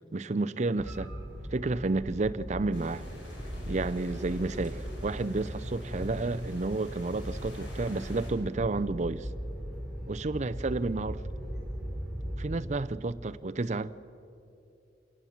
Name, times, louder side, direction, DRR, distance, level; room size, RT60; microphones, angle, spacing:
voice 1, 0.1-1.1 1.5-3.0 3.7-9.3 10.1-11.2 12.4-13.9, right 3 dB, 40° right, 12 dB, 0.6 m, -31 dB
sound 1, 0.8-12.6, equal, 5° right, 4.2 m, -38 dB
sound 2, 2.7-8.3, left 1 dB, 80° left, 6.3 m, -48 dB
27.5 x 18.5 x 7.3 m, 2.8 s
head